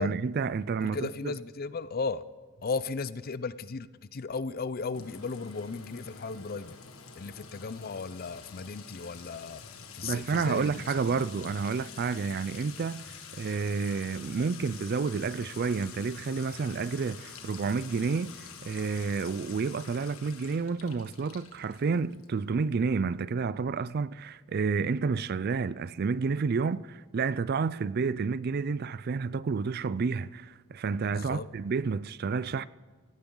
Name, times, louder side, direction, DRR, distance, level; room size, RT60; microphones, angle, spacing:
voice 1, 0.0-1.3 10.0-32.7, right 5 dB, 45° right, 0.4 m, -30 dB
voice 2, 0.8-2.2 2.6-6.8 7.2-11.5 31.1-31.5, left 4 dB, 45° left, 0.5 m, -36 dB
Sink (filling or washing) / Trickle dribble / Fill (with liquid), 4.9-22.4, left 6 dB, 85° left, 1.7 m, -47 dB
17.5 x 16.5 x 3.9 m
head